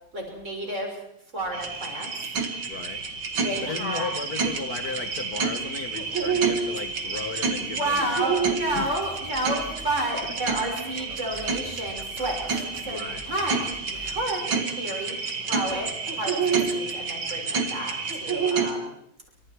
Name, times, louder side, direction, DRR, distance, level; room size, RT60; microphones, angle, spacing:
voice 1, 0.1-1.0 1.3-2.1 3.4-4.1 7.6-12.4 12.8-15.2 15.4-18.9, right 1 dB, 35° right, 1 dB, 6.8 m, -31 dB
sound 1, 1.5-18.7, right 5 dB, 85° right, 3.0 m, -29 dB
voice 2, 2.7-3.0 3.6-8.2 8.5-8.9 10.2-10.3 12.8-13.2 15.7-15.8, left 4 dB, 55° left, 8 dB, 1.6 m, -35 dB
sound 2, 8.3-14.2, equal, 15° left, 2.7 m, -44 dB
28.5 x 26.0 x 4.8 m, 0.77 s
omnidirectional pair, 2.1 m